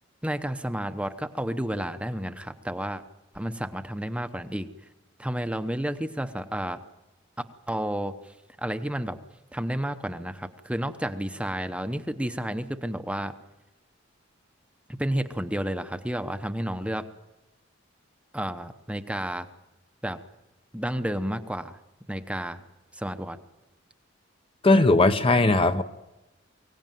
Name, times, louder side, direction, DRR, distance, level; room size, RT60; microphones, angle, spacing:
voice 1, 0.2-3.0 3.3-4.7 5.2-6.8 7.7-9.2 9.5-13.3 15.0-17.0 18.3-19.5 20.0-20.2 20.7-21.8 22.1-22.6 22.9-23.4, right 1 dB, 5° right, 0.9 m, -31 dB
voice 2, 24.6-25.8, left 2 dB, 30° left, 0.9 m, -19 dB
24.0 x 17.0 x 9.2 m
head